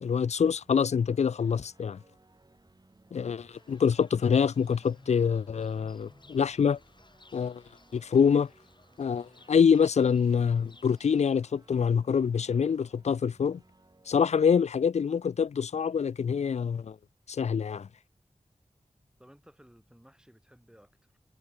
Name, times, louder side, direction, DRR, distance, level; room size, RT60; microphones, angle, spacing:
voice 1, 0.0-2.0 3.1-6.8 7.3-7.6 7.9-8.5 9.0-13.6 14.1-17.0 17.3-17.9, left 6 dB, 75° left, 0.4 m, -25 dB
sound 1, 0.6-14.6, right 2 dB, 35° right, 4.1 m, -62 dB
Fowl / Bird, 3.5-11.4, left 2 dB, 40° left, 4.2 m, -59 dB
voice 2, 19.2-21.2, equal, 5° right, 7.3 m, -58 dB
wide cardioid pair, 65°, 12 cm